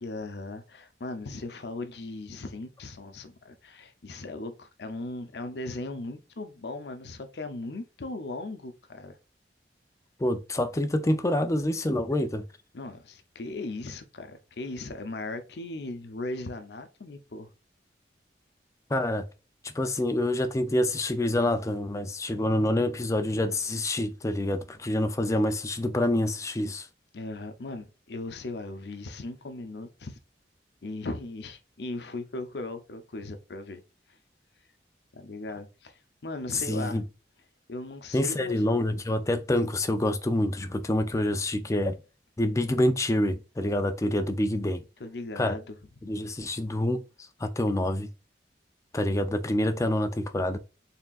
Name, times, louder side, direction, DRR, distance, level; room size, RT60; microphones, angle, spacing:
voice 1, 0.0-9.2 12.7-17.5 27.1-30.2 30.8-33.8 35.1-37.0 37.7-38.6 45.0-45.7, left 2 dB, 70° left, 0.7 m, -38 dB
voice 2, 10.2-12.4 18.9-19.3 19.6-26.9 36.5-37.0 38.1-42.0 42.4-44.8 45.4-45.5 46.0-47.0 47.4-48.1 48.9-50.6, left 1 dB, 20° left, 0.4 m, -27 dB
4.2 x 3.5 x 2.4 m
head